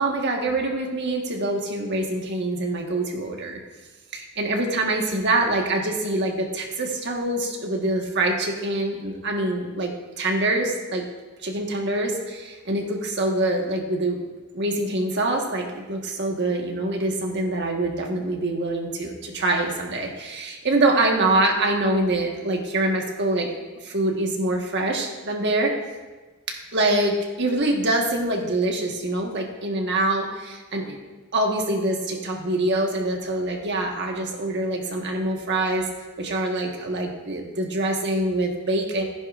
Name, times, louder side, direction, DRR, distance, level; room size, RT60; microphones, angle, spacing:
voice 1, 0.0-3.6 4.1-11.0 11.4-14.2 14.5-23.5 23.8-25.7 26.5-31.0 31.3-35.9 36.2-39.0, right 2 dB, 55° right, 1 dB, 1.5 m, -25 dB
14.5 x 10.0 x 2.5 m, 1.2 s
head